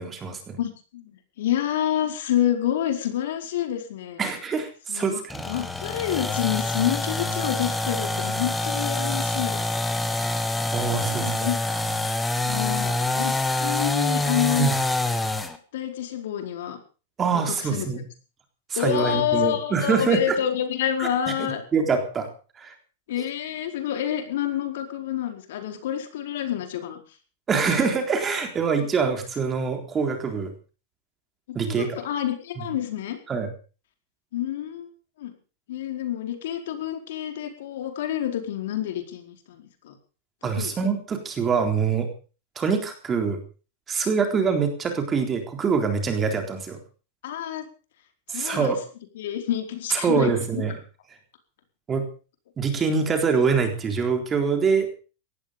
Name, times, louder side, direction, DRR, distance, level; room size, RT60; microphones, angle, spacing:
voice 1, 0.0-0.6 4.2-5.4 10.7-11.5 14.5-14.8 17.2-18.0 18.7-20.4 21.0-21.1 21.4-22.3 22.6-22.7 27.5-30.5 31.6-32.0 32.6-32.7 33.3-33.5 40.4-42.1 42.6-43.4 43.9-46.8 48.3-48.8 49.9-50.8 51.9-52.1 52.6-55.0, right 5 dB, 20° right, 5 dB, 3.9 m, -24 dB
voice 2, 0.6-4.2 4.9-5.2 5.5-9.8 10.9-11.6 12.5-14.7 15.7-16.8 17.3-17.9 18.8-21.6 23.1-27.0 31.5-33.2 34.3-34.9 35.2-35.3 35.7-39.9 40.5-40.7 47.2-47.7 48.3-48.7 49.2-50.6, left 11 dB, 70° left, 6 dB, 4.6 m, -28 dB
sound 1, 5.3-15.6, left 2 dB, 5° left, 1.7 m, -26 dB
18.5 x 14.5 x 5.2 m, 0.37 s
supercardioid pair, 155°, 0 cm